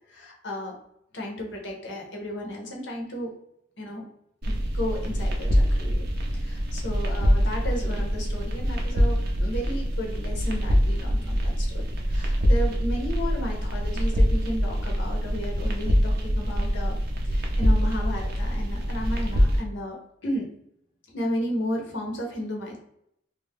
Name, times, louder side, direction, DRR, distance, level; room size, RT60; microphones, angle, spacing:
voice 1, 0.1-0.7 1.1-3.3 3.8-4.0 4.5-17.0 17.2-20.0 20.2-20.5 21.1-22.8, equal, 85° left, 0 dB, 0.8 m, -33 dB
sound 1, 4.4-19.6, equal, 55° right, 0.5 m, -24 dB
2.6 x 2.1 x 3.4 m, 0.76 s
head